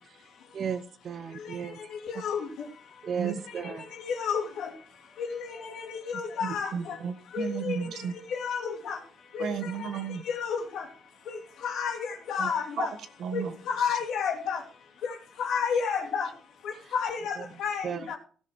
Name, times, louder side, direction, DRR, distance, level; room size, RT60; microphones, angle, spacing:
voice 1, 0.5-1.8 3.0-3.9 17.4-17.5 17.8-18.1, right 7 dB, 40° right, 0.7 m, -35 dB
voice 2, 2.0-2.4 4.0-4.7 5.2-6.9 7.3-8.0 8.3-9.0 9.3-9.6 10.3-10.8 11.3-11.4 11.6-12.9 13.3-14.6 15.0-16.3 16.9-18.2, left 6 dB, 70° left, 2.7 m, -31 dB
voice 3, 3.2-3.7 6.4-8.1 9.4-10.2 12.4-12.5 12.8-12.9 13.2-14.0, right 7 dB, 60° right, 1.5 m, -34 dB
16.5 x 6.4 x 6.3 m
cardioid pair, 145°, 0 cm